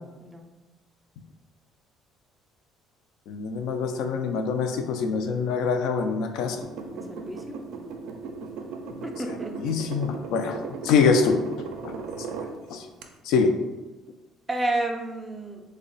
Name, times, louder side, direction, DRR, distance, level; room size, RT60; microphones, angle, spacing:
voice 1, 3.3-6.6 9.5-11.4 11.8-12.3 12.7-12.8 13.3-13.6, left 5 dB, 70° left, 6 dB, 0.3 m, -24 dB
sound 1, 6.6-12.5 13.0-13.1, right 4 dB, 75° right, 0.4 m, -37 dB
voice 2, 6.9-7.6 9.0-9.5 14.5-15.6, right 2 dB, 10° right, 2 dB, 0.4 m, -30 dB
3.5 x 2.1 x 3.9 m, 1.1 s
cardioid pair, 155°, 0 cm